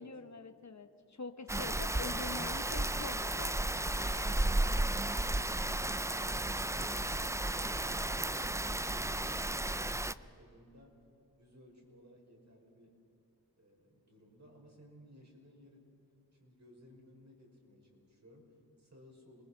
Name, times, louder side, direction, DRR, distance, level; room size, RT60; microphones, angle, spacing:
voice 1, 0.0-3.5 3.8-4.4, left 4 dB, 45° left, 9 dB, 1.1 m, -46 dB
Rain, 1.5-10.1, right 1 dB, 10° right, 0.5 m, -33 dB
voice 2, 4.7-11.0 11.4-13.0 13.6-15.9 16.4-19.4, equal, 45° right, 0 dB, 6.0 m, -59 dB
28.0 x 21.0 x 5.8 m, 2.8 s
wide cardioid pair, 70°, 39 cm